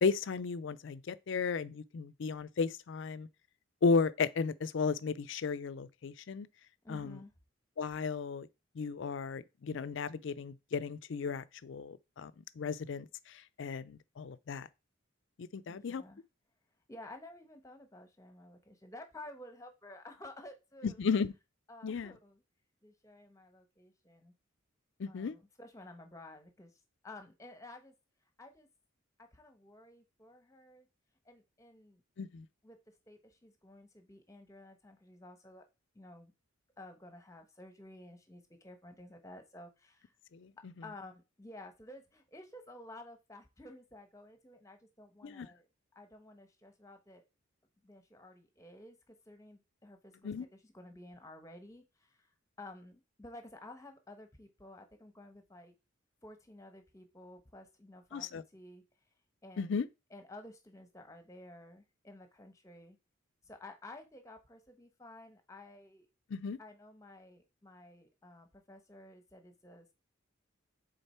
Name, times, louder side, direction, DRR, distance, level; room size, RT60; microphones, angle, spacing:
voice 1, 0.0-3.3 3.8-6.5 6.9-7.2 7.8-8.5 8.8-12.3 12.6-14.7 15.4-16.0 20.8-21.3 21.8-22.1 25.0-25.4 32.2-32.5 40.3-40.5 45.2-45.5 50.2-50.5 58.1-58.4 59.6-59.9 66.3-66.6, left 5 dB, 65° left, 0.4 m, -34 dB
voice 2, 6.8-7.3 15.7-16.2 16.9-21.0 21.7-22.4 22.8-24.3 25.1-26.7 27.0-27.9 28.4-28.7 29.2-30.9 31.2-32.0 32.6-32.8 33.1-35.6 35.9-36.3 36.8-40.1 40.8-45.7 45.9-47.3 47.8-52.3 52.6-55.7 56.2-58.8 59.4-59.8 60.1-63.0 63.4-66.1 66.6-69.9, left 1 dB, 15° left, 1.0 m, -53 dB
6.6 x 3.9 x 4.3 m
head